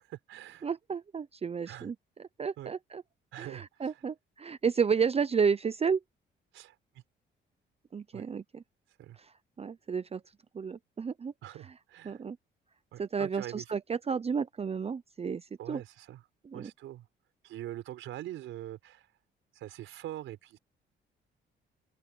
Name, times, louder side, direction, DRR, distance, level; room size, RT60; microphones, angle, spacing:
voice 1, 0.0-0.7 1.7-1.9 2.6-2.8 3.3-4.0 6.5-7.0 8.1-8.3 9.0-9.2 11.4-12.2 12.9-13.7 15.6-16.2 16.5-17.1 17.4-19.1 19.5-20.6, right 13 dB, 85° right, 4.5 m, -44 dB
voice 2, 0.6-3.0 3.4-6.0 7.9-8.6 9.2-10.2 10.5-11.3 12.1-12.4 13.0-15.8 16.4-16.7, right 6 dB, 30° right, 0.7 m, -32 dB
open air
cardioid pair, 90°, 20 cm